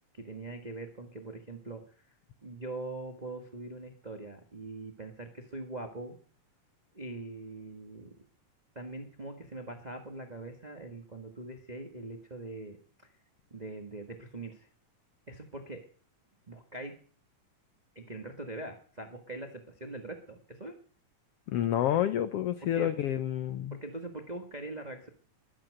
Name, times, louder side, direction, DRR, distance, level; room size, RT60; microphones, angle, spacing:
voice 1, 0.1-1.8 2.4-6.2 6.9-8.1 8.7-12.8 13.5-14.7 15.3-15.8 16.5-16.9 17.9-20.7 22.7-22.9 23.7-25.1, right 2 dB, 75° right, 5 dB, 0.4 m, -42 dB
voice 2, 21.5-23.7, left 11 dB, 90° left, 12 dB, 1.3 m, -29 dB
14.5 x 12.0 x 6.5 m, 0.43 s
omnidirectional pair, 3.7 m